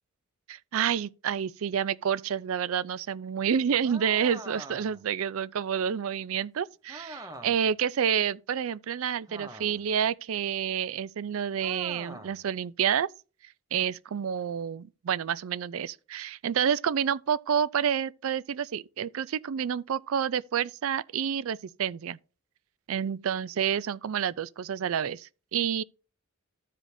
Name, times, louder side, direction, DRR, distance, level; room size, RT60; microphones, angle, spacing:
voice 1, 0.5-13.1 13.7-22.2 22.9-25.8, right 8 dB, 65° right, 0.4 m, -29 dB
sound 1, 3.8-5.1 6.9-7.7 9.3-9.9 11.6-12.4, right 2 dB, 15° right, 0.8 m, -44 dB
14.0 x 5.1 x 2.7 m
head